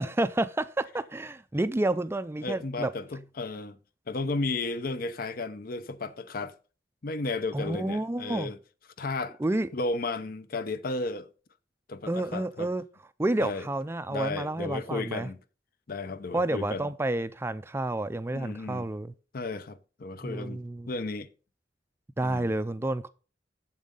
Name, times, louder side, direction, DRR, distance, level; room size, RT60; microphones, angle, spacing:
voice 1, 0.0-2.9 7.5-8.5 9.4-9.7 12.1-12.8 13.2-15.3 16.3-19.1 20.2-20.9 22.2-23.1, right 2 dB, 15° right, 0.4 m, -30 dB
voice 2, 2.4-3.8 4.1-6.6 7.0-8.6 9.0-9.4 9.7-11.3 11.9-12.7 13.4-13.7 14.1-15.4 15.9-16.9 18.3-18.9 19.3-21.3 22.2-22.5, left 3 dB, 50° left, 0.6 m, -34 dB
7.4 x 7.3 x 5.3 m
head